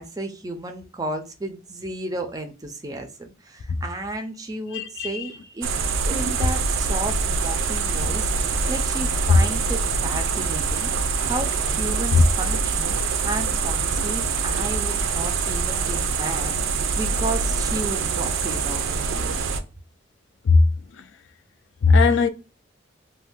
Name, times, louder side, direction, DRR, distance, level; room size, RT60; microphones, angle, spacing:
voice 1, 0.0-5.7 6.0-12.9 13.2-19.4, right 2 dB, 20° right, 0.4 m, -33 dB
voice 2, 4.7-5.3 9.3-9.4 12.1-12.2 20.4-20.6 21.0-21.1 21.8-22.3, left 4 dB, 75° left, 0.4 m, -17 dB
sound 1, 5.6-19.6, right 5 dB, 85° right, 0.4 m, -24 dB
2.6 x 2.2 x 3.5 m
head